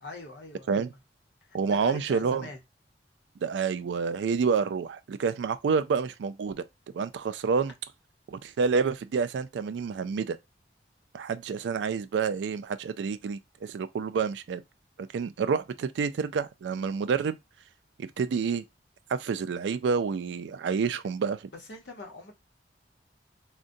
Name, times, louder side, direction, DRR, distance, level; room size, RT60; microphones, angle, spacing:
voice 1, 0.0-1.0 1.4-2.6 21.5-22.3, left 3 dB, 85° left, 0.8 m, -43 dB
voice 2, 1.5-2.5 3.4-6.6 6.9-7.7 8.3-10.4 11.1-14.6 15.0-17.4 18.0-18.6 19.1-21.5, right 5 dB, 90° right, 0.3 m, -28 dB
3.7 x 2.1 x 2.6 m
head